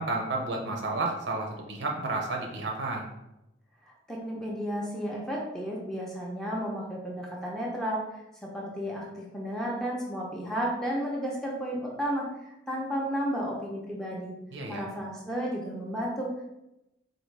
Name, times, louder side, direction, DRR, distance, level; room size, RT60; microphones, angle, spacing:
voice 1, 0.0-3.1 14.5-14.8, right 2 dB, 65° right, 1 dB, 0.8 m, -31 dB
voice 2, 4.1-8.0 8.4-12.3 12.7-14.3 14.7-16.4, equal, 5° left, -3 dB, 0.6 m, -32 dB
4.2 x 2.7 x 3.2 m, 0.90 s
head